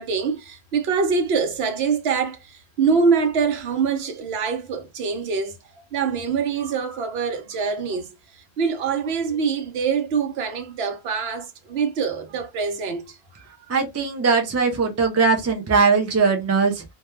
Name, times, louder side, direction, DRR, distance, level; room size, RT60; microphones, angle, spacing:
voice 1, 0.0-5.6 5.9-13.6, right 5 dB, 80° right, 0.8 m, -24 dB
voice 2, 13.7-16.8, right 5 dB, 25° right, 0.4 m, -20 dB
2.2 x 2.2 x 3.0 m
omnidirectional pair, 1.0 m